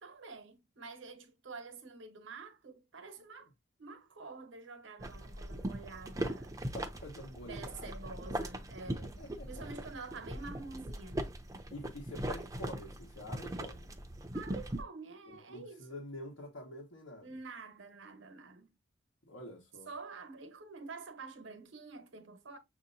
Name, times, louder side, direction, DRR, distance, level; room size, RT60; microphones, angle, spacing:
voice 1, 0.0-3.5 3.8-6.6 7.5-9.1 9.5-11.2 14.3-16.0 17.2-18.7 19.9-22.6, right 4 dB, 75° right, 1.0 m, -48 dB
sound 1, 5.0-14.8, right 1 dB, 15° right, 0.5 m, -40 dB
voice 2, 6.6-7.9 9.2-9.6 11.7-13.8 15.5-17.3 19.2-19.9, left 1 dB, 90° left, 1.2 m, -47 dB
6.5 x 2.8 x 2.6 m
head